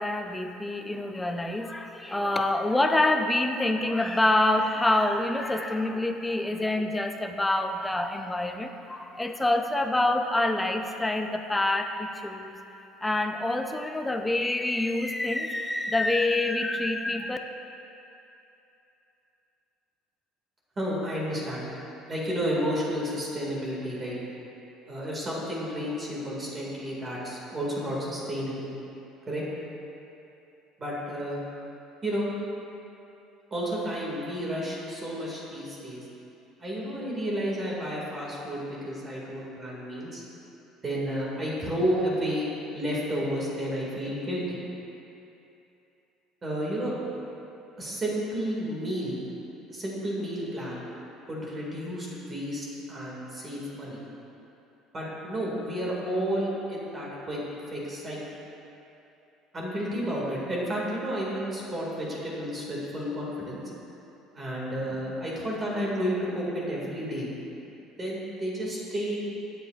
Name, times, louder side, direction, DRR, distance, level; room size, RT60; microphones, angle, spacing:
voice 1, 0.0-12.5 13.0-17.4, left 2 dB, 5° left, 5 dB, 0.5 m, -26 dB
voice 2, 20.8-21.7 22.1-24.2 24.9-28.7 29.3-29.4 30.8-31.4 32.0-32.3 33.5-36.0 36.6-40.2 40.8-44.6 46.4-46.9 47.8-49.2 49.7-50.8 51.3-54.0 54.9-57.4 57.7-58.2 59.5-63.6 64.3-67.3 68.0-69.2, equal, 20° right, -5 dB, 2.1 m, -31 dB
19.5 x 7.8 x 2.5 m, 2.9 s
cardioid pair, 155°, 0 cm